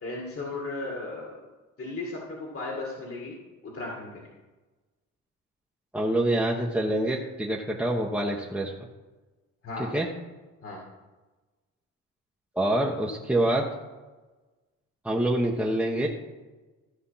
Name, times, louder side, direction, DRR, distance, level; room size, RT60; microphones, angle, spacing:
voice 1, 0.0-1.4 1.8-3.4 3.6-4.2 9.6-9.9 10.6-10.8, left 2 dB, 45° left, -2 dB, 2.2 m, -35 dB
voice 2, 5.9-8.7 9.8-10.1 12.5-13.6 15.0-16.1, right 1 dB, 5° right, -3 dB, 1.2 m, -26 dB
14.5 x 5.5 x 5.7 m, 1.2 s
cardioid pair, 90°, 30 cm